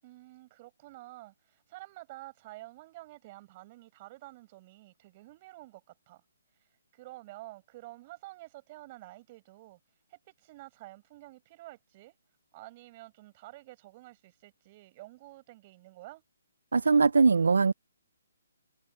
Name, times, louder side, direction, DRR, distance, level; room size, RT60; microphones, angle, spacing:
voice 1, 0.0-6.2 6.9-9.8 10.1-12.1 12.5-16.2, right 19 dB, 25° right, 8.0 m, -50 dB
voice 2, 16.7-17.7, right 4 dB, 85° right, 0.4 m, -21 dB
hypercardioid pair, 170°, 0 cm